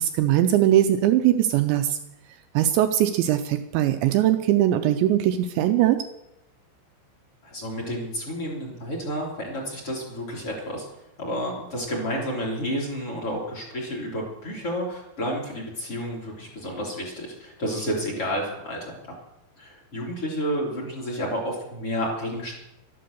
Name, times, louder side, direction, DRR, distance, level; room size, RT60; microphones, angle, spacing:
voice 1, 0.0-2.0 2.5-6.0, right 12 dB, 85° right, 8 dB, 2.6 m, -21 dB
voice 2, 7.4-10.8 11.2-19.0 19.6-22.6, equal, 30° left, -1 dB, 3.3 m, -30 dB
12.5 x 11.5 x 6.7 m, 0.91 s
omnidirectional pair, 5.8 m